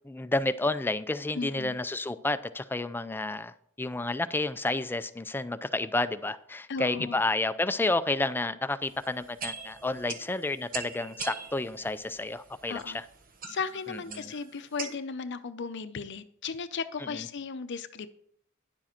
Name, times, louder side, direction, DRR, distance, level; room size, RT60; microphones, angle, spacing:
voice 1, 0.0-3.5 3.8-13.0 14.1-14.2, left 2 dB, 10° left, 12 dB, 0.4 m, -30 dB
voice 2, 1.3-1.8 6.7-7.2 12.7-13.0 13.5-18.1, left 5 dB, 60° left, 11 dB, 0.6 m, -36 dB
sound 1, 8.8-15.0, right 5 dB, 45° right, 1.1 m, -43 dB
10.5 x 7.4 x 4.3 m, 0.67 s
head